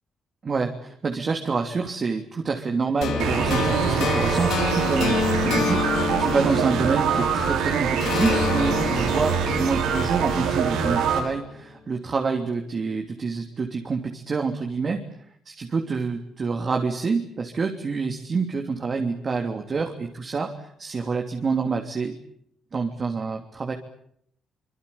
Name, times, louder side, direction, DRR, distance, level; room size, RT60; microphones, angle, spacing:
voice 1, 0.4-15.0 15.4-22.2 22.7-23.7, right 4 dB, 40° right, 3 dB, 3.1 m, -27 dB
sound 1, 3.0-7.5 8.0-11.1, left 5 dB, 80° left, 4.7 m, -28 dB
sound 2, 3.2-11.2, right 6 dB, 90° right, 6.7 m, -24 dB
25.5 x 23.0 x 8.7 m, 0.71 s
cardioid pair, 90°, 0 cm